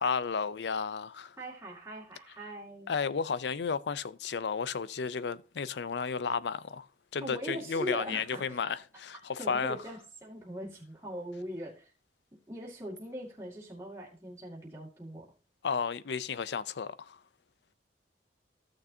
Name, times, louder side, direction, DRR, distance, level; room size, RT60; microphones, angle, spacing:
voice 1, 0.0-1.4 2.9-6.9 7.1-9.8 15.6-17.2, left 5 dB, 80° left, 0.5 m, -33 dB
voice 2, 1.4-2.9 7.2-8.6 8.9-11.9 12.5-15.3, equal, 15° right, 2.1 m, -41 dB
14.5 x 6.6 x 2.7 m
head